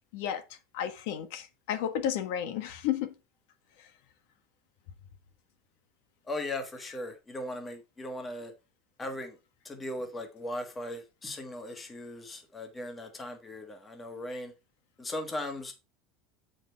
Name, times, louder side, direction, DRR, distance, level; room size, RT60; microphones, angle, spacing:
voice 1, 0.7-3.1, left 10 dB, 65° left, 1.3 m, -32 dB
voice 2, 6.3-8.5 9.0-9.4 9.6-14.5 15.0-15.7, left 1 dB, 10° left, 1.4 m, -38 dB
8.6 x 5.1 x 4.5 m
cardioid pair, 175°, 0 cm